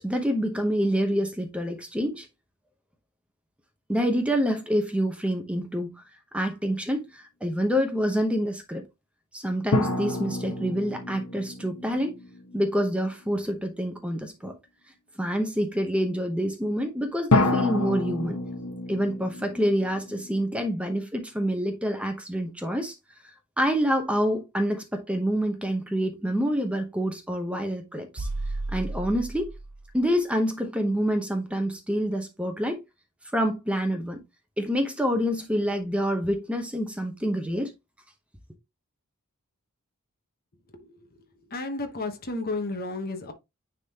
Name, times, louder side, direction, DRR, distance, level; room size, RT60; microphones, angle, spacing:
voice 1, 0.0-2.3 3.9-6.0 6.3-8.8 9.3-12.2 12.5-14.5 15.2-18.4 18.9-22.9 23.6-28.3 28.7-29.5 29.9-32.8 33.3-34.2 34.6-37.7, equal, 5° right, 0.9 m, -27 dB
sound 1, 9.7-13.1 17.3-20.6, left 2 dB, 85° left, 1.2 m, -28 dB
sound 2, 28.2-30.0, right 2 dB, 85° right, 1.0 m, -33 dB
voice 2, 40.7-41.1 41.5-43.3, left 2 dB, 40° left, 1.1 m, -32 dB
9.8 x 3.7 x 2.9 m
head